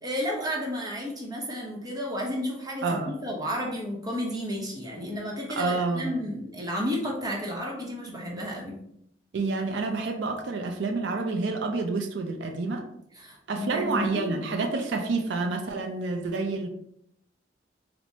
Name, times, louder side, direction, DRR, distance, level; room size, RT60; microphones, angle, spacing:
voice 1, 0.0-8.8 13.2-14.4, equal, 20° right, -2 dB, 0.7 m, -32 dB
voice 2, 2.8-3.1 5.5-6.2 9.3-12.9 13.5-16.7, right 3 dB, 75° right, 3 dB, 0.4 m, -28 dB
4.3 x 2.1 x 2.7 m, 0.74 s
head